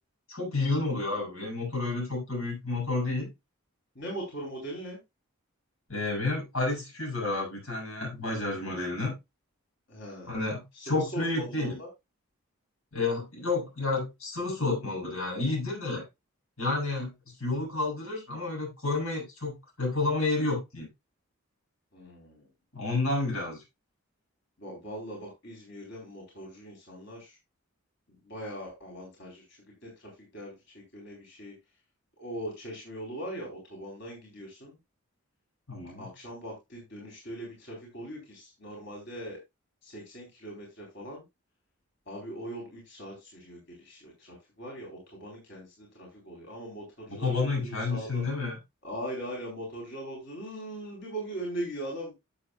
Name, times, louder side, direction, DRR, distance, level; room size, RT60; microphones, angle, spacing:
voice 1, 0.3-3.3 5.9-9.1 10.3-11.8 12.9-16.0 16.6-17.1 17.4-20.9 22.7-23.6 35.7-36.1 47.1-48.6, left 3 dB, 80° left, 6.9 m, -30 dB
voice 2, 4.0-5.0 9.9-10.5 10.7-11.9 21.9-22.5 24.6-27.4 28.2-29.4 29.8-31.5 32.2-34.8 36.0-39.4 39.8-41.2 42.1-48.2 48.8-52.1, right 1 dB, 55° left, 4.1 m, -40 dB
13.0 x 7.5 x 2.3 m
head